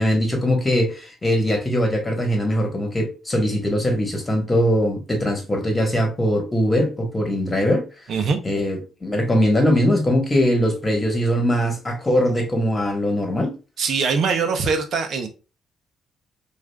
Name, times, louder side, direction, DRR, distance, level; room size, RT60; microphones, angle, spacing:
voice 1, 0.0-7.8 8.4-13.5, equal, 20° left, 1.3 m, -21 dB
voice 2, 13.8-15.3, right 5 dB, 65° right, 0.6 m, -22 dB
4.8 x 2.4 x 2.2 m
cardioid pair, 90°, 0 cm